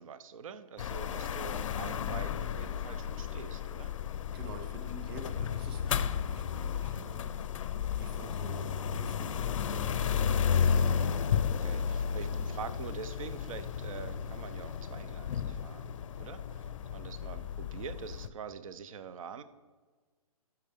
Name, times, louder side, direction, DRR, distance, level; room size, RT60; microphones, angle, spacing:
voice 1, 0.0-3.9 10.9-15.9 16.2-19.4, right 6 dB, 60° right, 13 dB, 0.6 m, -45 dB
sound 1, 0.8-18.3, left 7 dB, 55° left, 0.5 m, -33 dB
voice 2, 4.3-7.4 7.9-10.2, right 2 dB, 40° right, 6 dB, 1.1 m, -48 dB
12.0 x 5.6 x 3.6 m, 1.4 s
hypercardioid pair, 145°, 19 cm